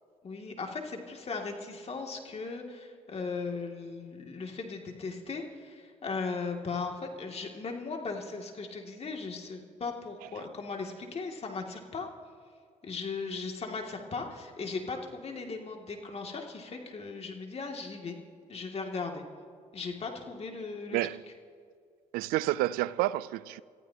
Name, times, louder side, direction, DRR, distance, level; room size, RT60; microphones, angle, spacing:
voice 1, 0.2-12.1 12.8-18.2 18.5-19.2 19.7-21.0, left 4 dB, 45° left, 2.5 m, -37 dB
voice 2, 22.1-23.6, right 16 dB, 85° right, 0.4 m, -29 dB
27.5 x 14.5 x 2.9 m
supercardioid pair, 60°, 15 cm